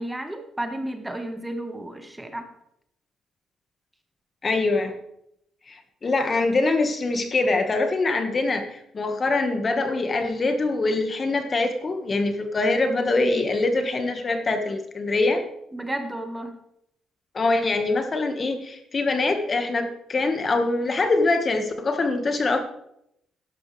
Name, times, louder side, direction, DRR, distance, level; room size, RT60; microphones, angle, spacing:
voice 1, 0.0-2.5 15.7-16.5, right 1 dB, 10° right, 6 dB, 1.4 m, -32 dB
voice 2, 4.4-4.9 5.7-15.4 17.3-22.6, left 3 dB, 35° left, 6 dB, 1.6 m, -24 dB
13.0 x 11.0 x 3.4 m, 0.76 s
cardioid pair, 90°, 0 cm